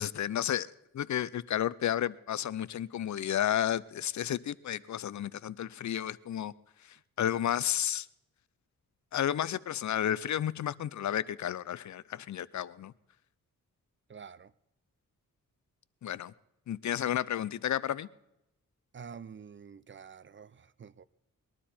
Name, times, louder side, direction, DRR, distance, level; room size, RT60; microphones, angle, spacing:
voice 1, 0.0-6.5 6.9-8.1 9.1-12.9 16.0-16.3 16.7-18.1, left 10 dB, 60° left, 0.5 m, -32 dB
voice 2, 14.1-14.5 18.9-21.0, right 6 dB, 35° right, 0.4 m, -48 dB
21.0 x 12.0 x 4.3 m
wide cardioid pair, 105°, 33 cm